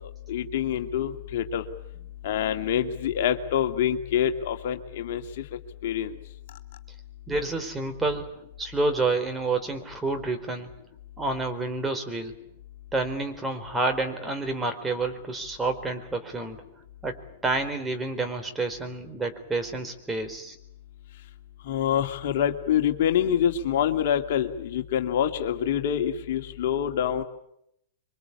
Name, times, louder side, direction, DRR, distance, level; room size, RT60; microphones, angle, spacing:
voice 1, 0.3-1.6 2.2-5.2 5.8-6.1 21.6-27.2, left 9 dB, 60° left, 6 dB, 2.3 m, -26 dB
voice 2, 7.3-8.3 8.6-10.7 11.2-12.3 12.9-16.6 17.0-20.6, right 3 dB, 10° right, 6 dB, 4.1 m, -29 dB
26.5 x 24.0 x 8.5 m, 0.78 s
hypercardioid pair, 110°, 0 cm